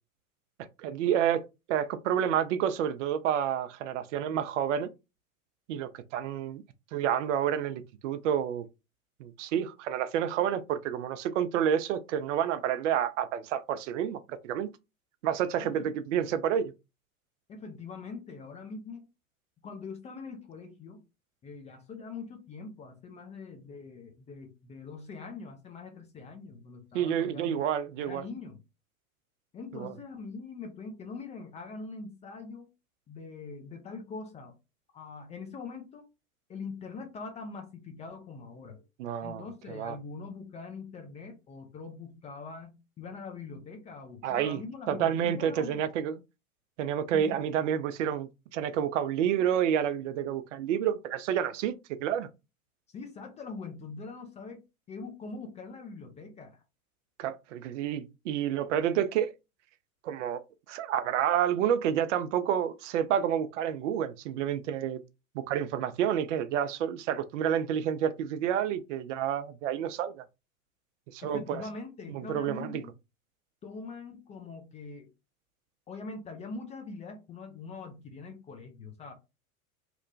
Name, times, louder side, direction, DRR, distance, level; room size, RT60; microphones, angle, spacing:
voice 1, 0.8-1.4 1.7-4.9 5.7-6.6 6.9-8.7 9.2-14.7 15.2-16.7 26.9-28.2 29.7-29.9 39.0-40.0 44.2-44.6 44.9-46.2 46.8-51.7 52.0-52.3 57.2-59.3 60.0-60.4 60.7-65.0 65.3-70.2 71.1-71.6 72.1-72.8, right 9 dB, 60° right, 0.5 m, -29 dB
voice 2, 15.6-15.9 17.5-19.1 19.6-21.0 21.4-27.6 28.0-28.6 29.5-32.7 33.1-34.5 34.9-36.1 36.5-38.8 39.2-45.8 47.1-47.4 52.9-54.6 54.9-56.6 71.2-72.9 73.6-75.1 75.9-79.1, left 4 dB, 15° left, 0.4 m, -43 dB
2.9 x 2.1 x 2.6 m
hypercardioid pair, 90°, 43 cm